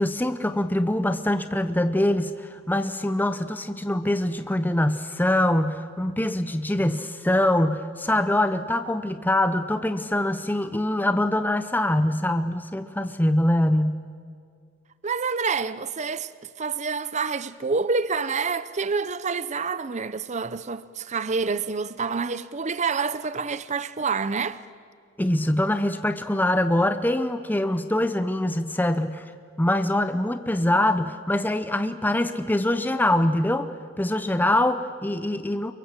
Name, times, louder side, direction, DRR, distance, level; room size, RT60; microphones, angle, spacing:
voice 1, 0.0-14.0 25.2-29.3 29.6-35.7, left 1 dB, 10° left, 0.7 m, -24 dB
voice 2, 15.0-16.3 16.6-24.6, right 4 dB, 35° right, 0.7 m, -27 dB
28.5 x 23.5 x 7.5 m
head